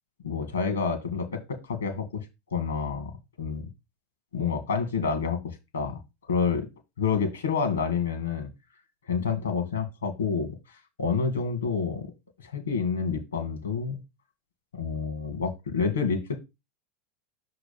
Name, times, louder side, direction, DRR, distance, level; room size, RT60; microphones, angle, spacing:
voice 1, 0.2-2.3 2.5-3.1 3.4-3.7 4.3-6.0 6.3-6.7 7.0-8.5 9.1-12.1 12.4-14.0 14.7-16.4, left 5 dB, 85° left, 1.9 m, -28 dB
6.3 x 3.9 x 5.3 m
hypercardioid pair, 90°, 0 cm